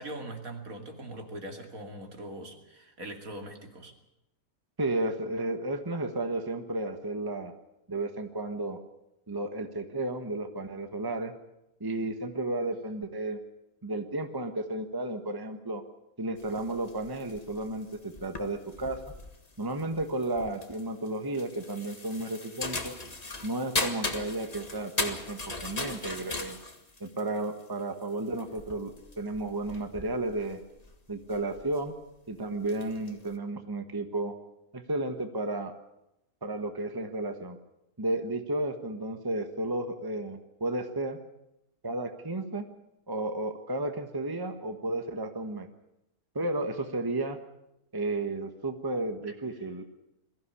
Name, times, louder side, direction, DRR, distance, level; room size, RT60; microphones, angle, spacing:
voice 1, 0.0-3.9 49.3-49.4, right 1 dB, 65° right, 4 dB, 3.1 m, -41 dB
voice 2, 4.8-7.5 7.9-8.8 9.3-11.3 11.8-13.4 13.8-15.8 16.2-19.0 19.6-22.9 23.4-26.6 27.0-30.6 31.1-31.9 32.3-34.3 34.7-35.7 36.4-37.6 38.0-41.2 41.8-42.6 43.1-45.7 46.3-47.4 47.9-49.8, right 2 dB, 15° right, 7 dB, 1.3 m, -33 dB
sound 1, 16.4-31.9 32.5-33.4, left 2 dB, 25° left, 1.7 m, -38 dB
22.0 x 15.0 x 9.9 m, 0.88 s
omnidirectional pair, 1.6 m